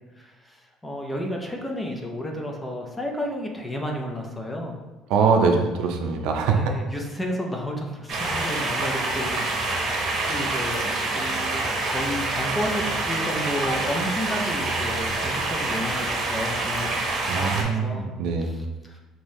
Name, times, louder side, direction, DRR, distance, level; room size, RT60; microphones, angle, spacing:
voice 1, 0.1-4.7 6.5-9.9 10.3-18.1 18.4-19.0, equal, 10° left, 1 dB, 0.4 m, -32 dB
voice 2, 5.1-6.7 17.3-18.7, right 5 dB, 70° right, 3 dB, 0.5 m, -23 dB
sound 1, 8.1-17.6, right 2 dB, 40° right, 0.8 m, -26 dB
5.2 x 2.6 x 3.1 m, 1.2 s
cardioid pair, 175°, 0 cm